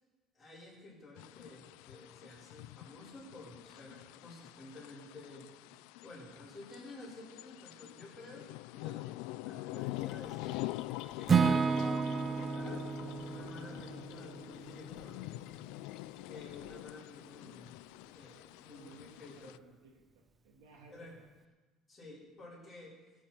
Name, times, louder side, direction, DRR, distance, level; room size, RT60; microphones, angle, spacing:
voice 1, 0.3-5.5 6.0-10.6 11.1-15.2 16.2-19.6 20.9-21.2 21.9-23.0, left 2 dB, 10° left, -8 dB, 5.0 m, -52 dB
sound 1, 1.2-19.6, left 19 dB, 80° left, 0.3 m, -46 dB
voice 2, 6.2-6.5 18.6-21.1, right 2 dB, 85° right, 0 dB, 3.0 m, -59 dB
sound 2, 9.8-16.8, left 12 dB, 60° left, 0.7 m, -52 dB
Acoustic guitar / Strum, 11.3-15.3, right 5 dB, 20° right, 0.4 m, -32 dB
22.0 x 8.7 x 4.5 m, 1.2 s
cardioid pair, 165°, 0 cm